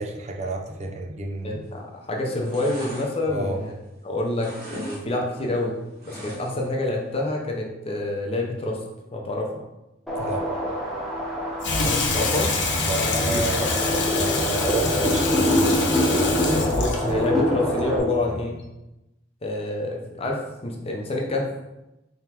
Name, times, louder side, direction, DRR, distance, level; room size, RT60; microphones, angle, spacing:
voice 1, 0.0-1.6 3.3-3.6 10.2-10.4 12.8-13.9 14.1-15.8, right 2 dB, 40° right, 3 dB, 0.5 m, -30 dB
voice 2, 1.4-3.7 4.0-5.8 6.1-8.8 9.1-9.5 11.8-12.6 13.0-13.7 16.5-18.6 19.4-21.5, left 2 dB, 35° left, 0 dB, 0.7 m, -27 dB
sound 1, 1.6-1.9 2.2-4.0 4.3-5.0 5.3-6.7 7.1-7.2, equal, 55° right, 1.0 m, -40 dB
sound 2, 10.1-18.0, equal, ahead, 0.8 m, -25 dB
Water tap faucet / Sink (filling or washing), 11.6-18.6, left 3 dB, 70° left, 0.6 m, -27 dB
3.8 x 3.5 x 2.9 m, 0.95 s
head